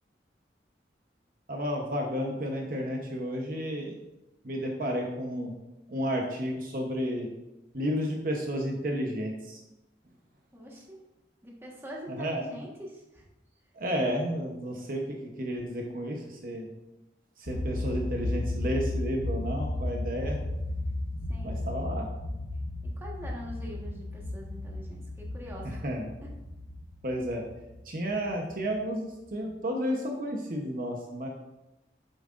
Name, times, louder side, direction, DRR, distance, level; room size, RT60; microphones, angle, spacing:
voice 1, 1.5-3.9 4.4-5.6 5.9-7.3 7.7-9.6 12.1-12.5 13.7-16.7 17.4-20.4 21.4-22.1 25.8-26.1 27.0-27.4 27.8-31.3, equal, 50° right, 1 dB, 0.9 m, -32 dB
voice 2, 10.5-11.0 11.4-13.3 21.3-21.6 22.8-25.8 26.2-26.3, equal, 15° right, -2 dB, 1.4 m, -44 dB
sound 1, 17.5-28.7, left 1 dB, 80° left, 1.1 m, -34 dB
9.2 x 7.4 x 2.5 m, 0.99 s
head